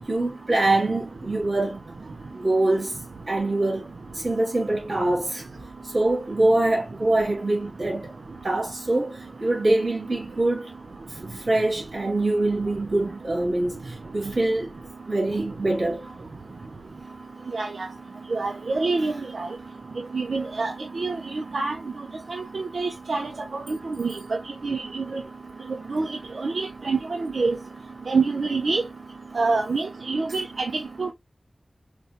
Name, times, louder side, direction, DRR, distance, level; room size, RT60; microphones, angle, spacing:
voice 1, 0.1-2.0 2.3-3.0 3.3-5.4 5.9-8.1 8.4-10.7 11.2-14.7 15.1-16.1 26.8-26.9 30.3-30.4, right 2 dB, 60° right, 2.5 m, -24 dB
voice 2, 18.3-19.5 20.1-21.8 22.3-23.3 23.7-24.1 24.6-25.2 25.9-27.6 28.1-28.8 29.4-30.7 31.0-31.1, right 3 dB, 90° right, 0.4 m, -26 dB
4.1 x 2.2 x 2.7 m
wide cardioid pair, 75°, 0 cm